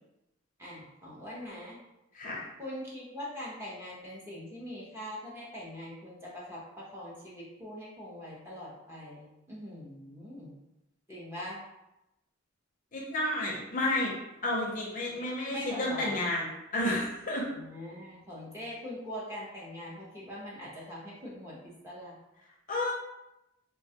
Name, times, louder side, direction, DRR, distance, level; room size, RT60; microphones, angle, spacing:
voice 1, 0.6-1.8 2.6-10.5 11.1-11.6 15.2-16.3 17.5-22.1, left 1 dB, 10° right, -6 dB, 0.6 m, -42 dB
voice 2, 12.9-14.1 14.4-17.5 22.7-22.9, left 1 dB, 35° left, -3 dB, 0.5 m, -31 dB
3.2 x 2.2 x 2.7 m, 0.92 s
head